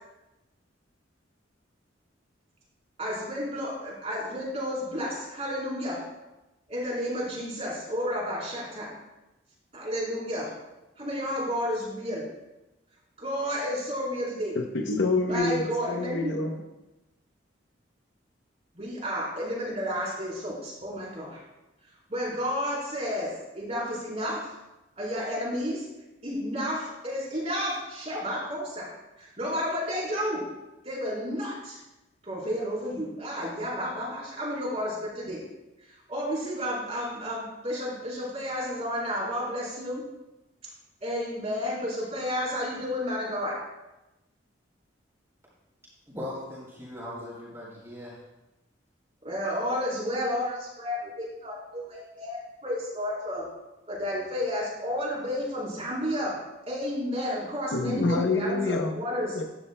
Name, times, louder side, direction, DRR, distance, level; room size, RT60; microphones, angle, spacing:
voice 1, 3.0-6.0 6.7-8.9 9.7-10.5 11.0-12.3 13.2-14.6 15.2-16.5 18.7-21.4 22.1-24.5 25.0-25.9 26.2-28.9 29.2-30.4 30.8-31.8 32.2-35.4 36.1-40.0 41.0-43.6 49.2-53.5 53.9-56.4 56.7-59.4, equal, 35° right, -5 dB, 3.8 m, -31 dB
voice 2, 14.5-16.6 57.7-59.0 59.3-59.4, left 2 dB, 70° left, 3 dB, 0.8 m, -27 dB
voice 3, 46.1-48.2, left 1 dB, 15° right, -7 dB, 3.8 m, -39 dB
13.0 x 10.5 x 2.2 m, 0.99 s
head